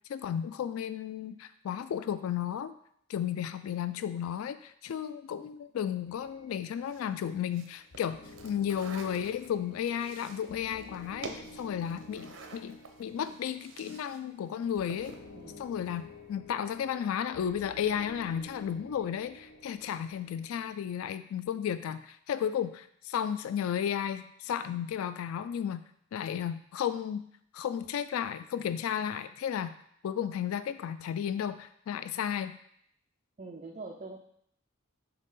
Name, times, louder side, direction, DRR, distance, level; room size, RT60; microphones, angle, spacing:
voice 1, 0.1-2.8 3.1-15.2 15.6-27.3 27.5-29.7 30.0-32.6, left 9 dB, 85° left, 13 dB, 0.3 m, -33 dB
sound 1, 6.1-20.7, left 2 dB, 70° left, 0.7 m, -52 dB
sound 2, 6.8-14.2 14.5-15.3, right 3 dB, 65° right, 0.7 m, -48 dB
voice 2, 33.4-34.2, right 3 dB, 30° right, 2 dB, 0.4 m, -44 dB
6.6 x 4.0 x 3.7 m, 0.69 s
head